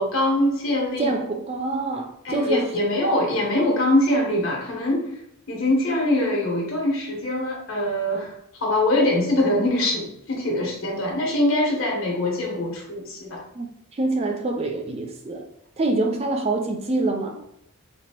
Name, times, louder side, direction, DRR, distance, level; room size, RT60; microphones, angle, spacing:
voice 1, 0.0-1.1 2.2-5.0 5.5-8.3 8.6-13.4, left 1 dB, 65° left, 1.3 m, -23 dB
voice 2, 1.0-2.7 13.5-15.5 15.8-17.4, right 2 dB, 25° right, 0.3 m, -25 dB
4.4 x 2.8 x 2.9 m
head